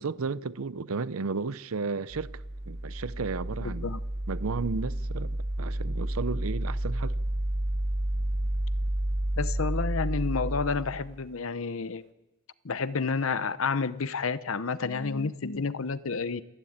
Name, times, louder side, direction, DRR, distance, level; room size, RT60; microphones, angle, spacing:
voice 1, 0.0-2.3 2.7-3.9 4.3-7.2, right 4 dB, 80° right, 0.6 m, -33 dB
sound 1, 2.1-11.2, right 1 dB, 50° right, 1.1 m, -31 dB
voice 2, 3.6-4.0 9.4-12.0 12.6-16.4, left 4 dB, 75° left, 0.8 m, -30 dB
28.0 x 11.5 x 8.8 m
head